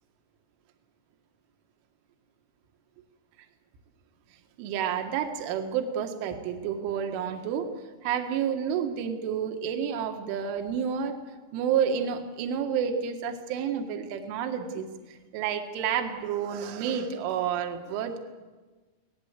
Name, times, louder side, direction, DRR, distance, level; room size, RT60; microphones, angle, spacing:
voice 1, 4.6-7.7 8.0-11.2 11.5-18.2, right 8 dB, 75° right, 4 dB, 4.0 m, -30 dB
25.5 x 18.5 x 8.2 m, 1.3 s
omnidirectional pair, 5.8 m